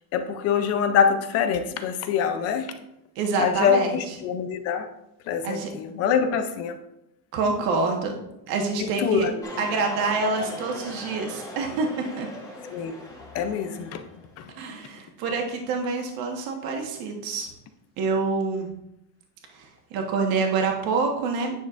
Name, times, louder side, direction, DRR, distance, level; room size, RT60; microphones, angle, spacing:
voice 1, 0.1-2.7 3.4-4.9 5.3-6.8 8.8-9.4 12.7-12.9 13.3-14.0 14.4-14.5, left 7 dB, 35° left, 8 dB, 0.4 m, -24 dB
voice 2, 3.1-4.2 5.4-5.7 7.3-8.2 8.5-9.3 9.6-11.9 12.2-12.3 14.5-17.5 18.0-18.7 19.5-21.5, right 4 dB, 45° right, 2 dB, 1.4 m, -27 dB
sound 1, 9.4-14.3, left 2 dB, 5° left, 1.1 m, -39 dB
9.4 x 6.3 x 2.5 m, 0.85 s
cardioid pair, 155°, 48 cm